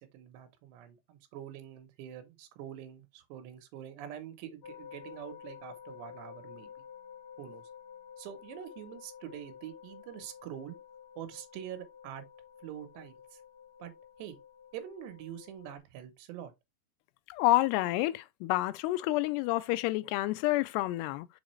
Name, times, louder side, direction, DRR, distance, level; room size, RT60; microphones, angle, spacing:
voice 1, 0.0-6.7 7.4-7.6 8.2-10.8 11.2-12.2 12.6-13.4 13.8-13.9 14.2-14.4 14.7-16.5, right 10 dB, 85° right, 3.1 m, -45 dB
sound 1, 4.6-15.8, left 8 dB, 55° left, 1.1 m, -51 dB
voice 2, 17.3-21.3, left 17 dB, 85° left, 2.6 m, -29 dB
6.4 x 4.7 x 3.1 m
omnidirectional pair, 4.8 m